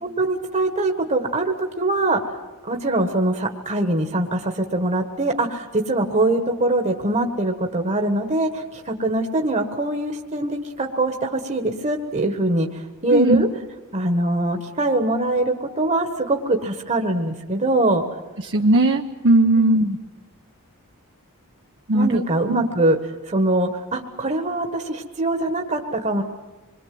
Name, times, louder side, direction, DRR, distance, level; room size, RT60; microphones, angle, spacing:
voice 1, 0.0-2.3 2.6-13.5 13.9-18.0 19.5-20.0 21.9-23.0 23.2-26.2, right 2 dB, 30° right, 3 dB, 1.4 m, -23 dB
voice 2, 13.1-13.4 18.4-19.8 21.9-22.2 22.5-22.7, right 1 dB, 55° right, 2 dB, 0.9 m, -18 dB
26.5 x 22.0 x 7.8 m, 1.2 s
head